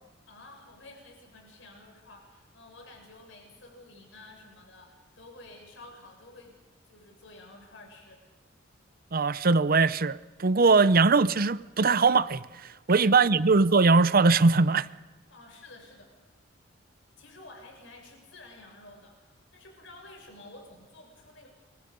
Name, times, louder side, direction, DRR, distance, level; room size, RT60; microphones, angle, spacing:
voice 1, 0.3-6.6 6.9-8.2 12.9-13.3 15.3-16.1 17.2-21.5, left 2 dB, 65° left, 7.0 m, -51 dB
voice 2, 9.1-14.9, right 4 dB, 50° right, 0.7 m, -21 dB
29.0 x 24.5 x 5.4 m
head